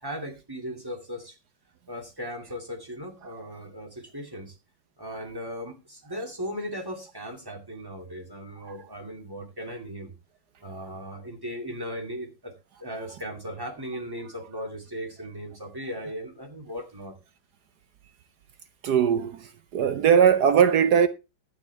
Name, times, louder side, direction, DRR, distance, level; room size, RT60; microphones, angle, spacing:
voice 1, 0.0-1.3 1.9-4.6 5.0-10.1 10.6-12.5 12.8-17.2, equal, 10° right, 2.5 m, -37 dB
voice 2, 18.8-19.4 19.7-21.1, right 8 dB, 65° right, 1.1 m, -19 dB
12.0 x 9.7 x 3.5 m
omnidirectional pair, 2.2 m